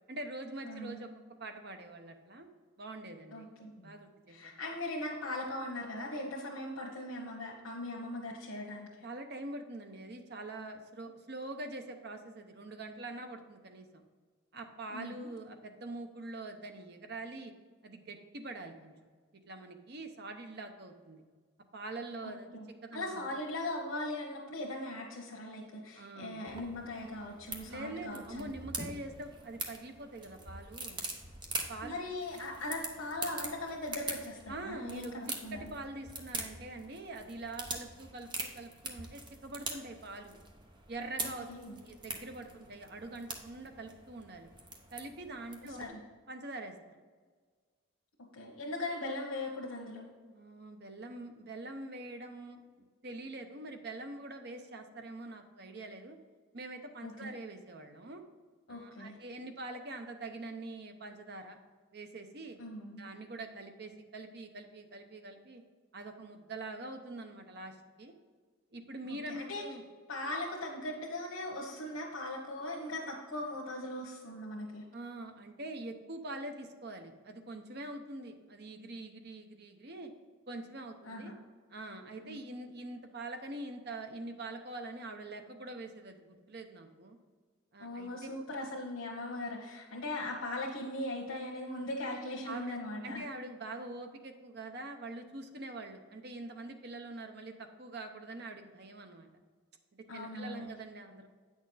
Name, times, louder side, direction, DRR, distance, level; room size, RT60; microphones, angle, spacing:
voice 1, 0.1-1.1 1.4-2.5 2.8-3.5 3.8-4.4 9.0-14.0 14.5-17.5 17.8-18.9 19.5-21.2 21.7-22.5 22.8-23.2 26.0-26.4 27.7-31.0 31.7-32.0 34.5-40.4 40.9-41.5 41.8-44.5 44.9-46.0 46.3-46.7 50.3-52.6 53.0-56.2 56.5-58.2 58.7-61.6 61.9-62.6 63.0-65.6 65.9-68.1 68.7-69.8 74.9-80.1 80.5-81.3 81.7-87.2 87.7-88.3 92.1-92.2 92.5-92.8 93.0-99.3 99.9-101.3, right 2 dB, 50° right, 6 dB, 0.8 m, -44 dB
voice 2, 0.6-1.1 3.3-3.9 4.3-8.9 14.9-15.3 22.2-28.5 31.8-35.7 41.2-41.8 45.8-45.9 48.3-50.1 57.0-57.3 58.7-59.2 62.6-63.1 69.1-69.6 70.1-74.8 81.0-81.4 82.2-82.4 87.8-93.2 100.1-100.7, left 1 dB, 90° left, -3 dB, 1.2 m, -39 dB
sound 1, 26.5-45.9, right 3 dB, 20° right, 0.8 m, -44 dB
8.7 x 6.3 x 4.0 m, 1.5 s
head